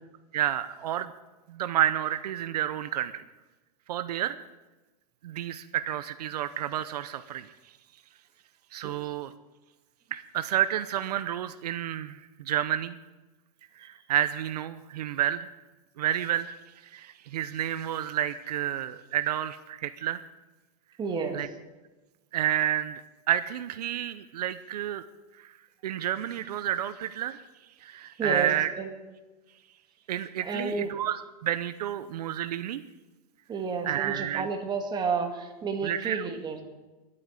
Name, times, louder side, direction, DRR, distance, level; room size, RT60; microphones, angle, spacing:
voice 1, 0.3-1.1 1.5-3.2 3.9-4.4 5.2-7.5 8.7-9.3 10.1-13.0 13.8-15.5 16.0-16.5 16.8-20.2 21.3-21.5 22.3-23.0 23.3-25.0 25.4-25.5 25.8-27.4 27.8-28.7 30.1-32.8 33.8-34.5 35.8-36.2, right 11 dB, 80° right, 12 dB, 0.8 m, -30 dB
voice 2, 21.0-21.4 28.2-29.0 30.4-30.9 33.5-36.6, right 5 dB, 20° right, 4 dB, 2.1 m, -31 dB
12.0 x 8.7 x 9.1 m, 1.1 s
supercardioid pair, 135°, 20 cm